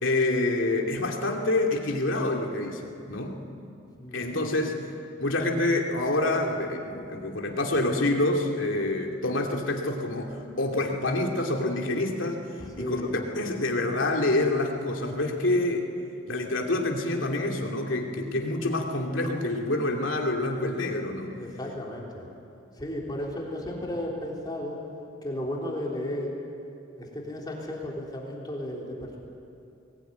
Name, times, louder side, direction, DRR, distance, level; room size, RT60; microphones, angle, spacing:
voice 1, 0.0-3.4 4.1-12.4 12.8-15.9 16.3-21.4, left 2 dB, 80° left, 1 dB, 2.6 m, -27 dB
voice 2, 4.0-4.5 12.6-13.2 21.3-22.3 22.8-24.8 25.2-26.4 27.0-29.2, left 1 dB, 20° left, -2 dB, 3.6 m, -34 dB
21.0 x 19.5 x 9.5 m, 2.7 s
head